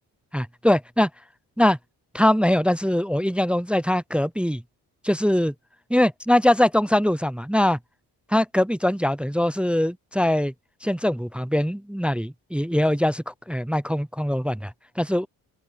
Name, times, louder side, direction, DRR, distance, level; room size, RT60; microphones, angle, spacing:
voice 1, 0.3-1.1 1.6-1.8 2.1-4.6 5.0-5.5 5.9-7.8 8.3-10.5 10.8-15.3, left 1 dB, 5° right, 0.6 m, -22 dB
supercardioid pair, 60°, 42 cm